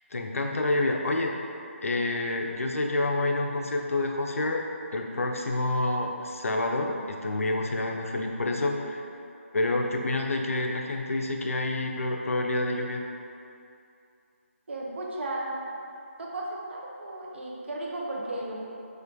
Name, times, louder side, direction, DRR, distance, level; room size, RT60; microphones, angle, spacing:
voice 1, 0.1-1.3 1.8-4.6 4.9-9.0 9.5-13.0, left 2 dB, 75° left, 2 dB, 0.4 m, -28 dB
voice 2, 14.7-15.5 16.2-18.6, right 1 dB, 55° right, -3 dB, 0.6 m, -35 dB
4.3 x 2.5 x 2.6 m, 2.6 s
figure-of-eight pair, 160°, 8 cm